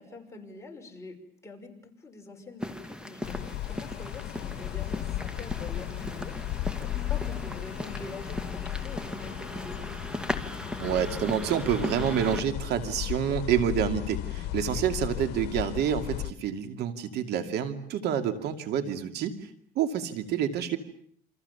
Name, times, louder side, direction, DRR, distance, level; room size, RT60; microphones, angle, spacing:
voice 1, 0.0-6.4 6.8-9.9 14.6-14.8, left 3 dB, 15° left, 2 dB, 5.8 m, -45 dB
sound 1, 2.6-12.4, left 1 dB, 5° right, 2.2 m, -38 dB
sound 2, 3.2-16.3, left 14 dB, 80° left, 1.1 m, -35 dB
voice 2, 10.8-19.5 19.8-20.8, right 9 dB, 80° right, 8 dB, 2.7 m, -28 dB
28.5 x 26.5 x 7.1 m, 0.62 s
cardioid pair, 110°, 17 cm